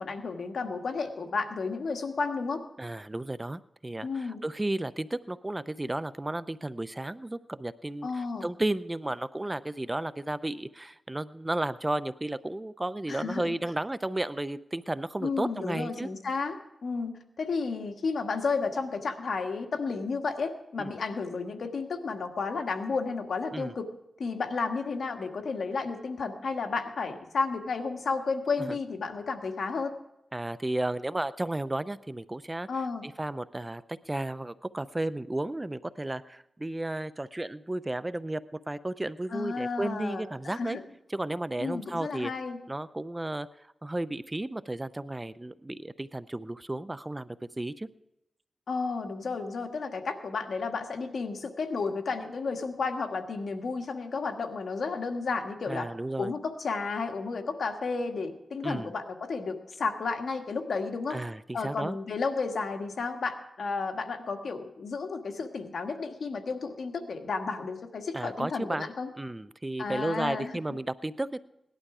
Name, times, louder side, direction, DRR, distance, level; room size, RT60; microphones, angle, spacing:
voice 1, 0.0-2.6 4.0-4.4 8.0-8.5 13.1-13.5 15.2-16.5 16.8-23.9 24.2-29.9 32.7-33.0 39.3-40.8 41.6-42.6 48.7-55.9 56.2-61.2 61.5-69.1 69.8-70.6, left 4 dB, 75° left, 5 dB, 1.6 m, -32 dB
voice 2, 2.8-16.1 20.8-20.9 23.5-23.7 28.7-28.8 30.3-32.7 33.0-38.4 38.7-40.8 41.1-42.3 42.7-43.5 43.8-47.3 47.6-47.9 55.7-56.3 58.6-58.9 61.1-62.0 68.1-68.9 69.2-71.4, right 1 dB, 20° right, 15 dB, 0.5 m, -33 dB
18.0 x 11.5 x 4.9 m, 0.88 s
cardioid pair, 70°, 0 cm